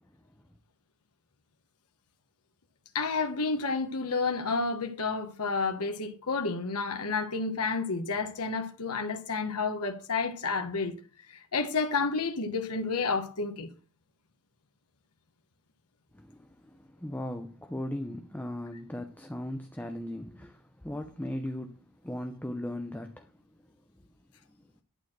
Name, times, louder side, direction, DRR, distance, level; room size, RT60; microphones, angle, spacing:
voice 1, 2.9-10.9 11.3-13.7, left 4 dB, 80° left, 1.3 m, -30 dB
voice 2, 16.1-23.3, left 1 dB, 10° left, 0.7 m, -38 dB
11.5 x 4.5 x 7.6 m
head